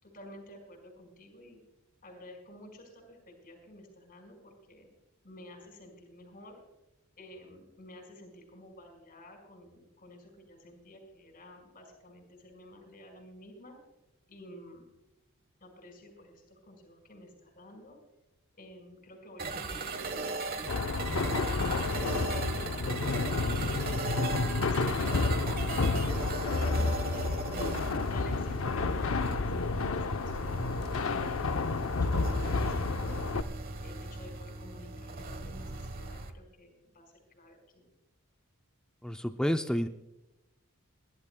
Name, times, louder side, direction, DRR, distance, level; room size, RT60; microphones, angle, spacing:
voice 1, 0.0-1.6 2.0-4.9 5.2-6.7 7.2-13.8 14.3-14.9 15.6-18.0 18.6-21.3 22.0-23.9 24.2-27.5 28.0-33.3 33.8-37.8, left 1 dB, 40° left, 2 dB, 4.8 m, -51 dB
sound 1, 19.4-36.3, right 3 dB, 45° right, 1.2 m, -38 dB
sound 2, 20.7-33.4, left 3 dB, 70° left, 0.7 m, -30 dB
voice 2, 39.0-39.9, equal, 5° left, 6 dB, 0.4 m, -29 dB
30.0 x 12.0 x 2.2 m, 0.97 s
head